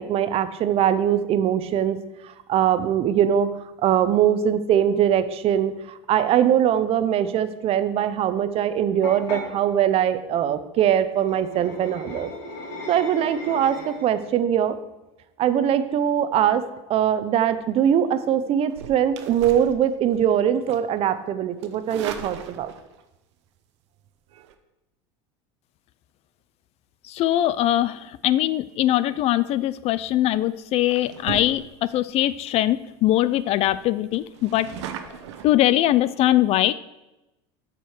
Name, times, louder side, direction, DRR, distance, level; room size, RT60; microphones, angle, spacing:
voice 1, 0.0-2.0 2.2-3.5 3.8-12.3 12.9-14.8 15.4-22.7, right 9 dB, 45° right, 12 dB, 0.7 m, -22 dB
sound 1, 9.0-9.5 11.1-14.2, left 2 dB, 80° left, 2.6 m, -36 dB
sound 2, 18.7-20.3 20.7-21.0 21.6-23.0 24.3-24.5 29.6-29.8 30.3-30.5 30.9-32.0 32.5-32.6 32.8-32.9 33.3-33.4 33.7-35.5, right 8 dB, 90° right, 0.9 m, -38 dB
voice 2, 27.1-31.6 31.9-34.7 35.4-36.7, left 14 dB, 45° left, 17 dB, 0.4 m, -21 dB
7.6 x 5.2 x 6.5 m, 0.97 s
supercardioid pair, 115°, 14 cm